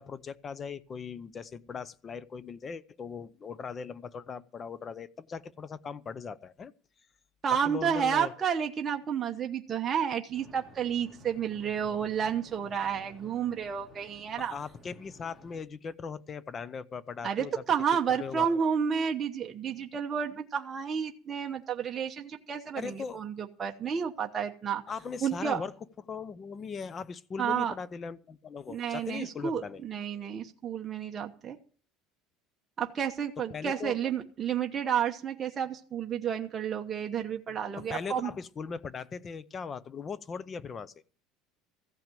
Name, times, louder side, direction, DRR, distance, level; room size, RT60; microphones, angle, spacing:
voice 1, 0.0-6.7 7.6-8.3 14.4-17.6 18.1-18.5 22.8-23.2 24.9-25.7 26.1-29.8 33.5-34.0 37.8-40.9, left 6 dB, 25° left, 0.6 m, -39 dB
voice 2, 7.4-14.5 17.2-24.8 25.2-25.6 27.4-27.7 28.7-31.6 32.8-38.3, right 7 dB, 25° right, 1.0 m, -31 dB
sound 1, 10.3-15.6, right 1 dB, ahead, 2.3 m, -54 dB
15.0 x 5.9 x 9.1 m
cardioid pair, 140°, 0 cm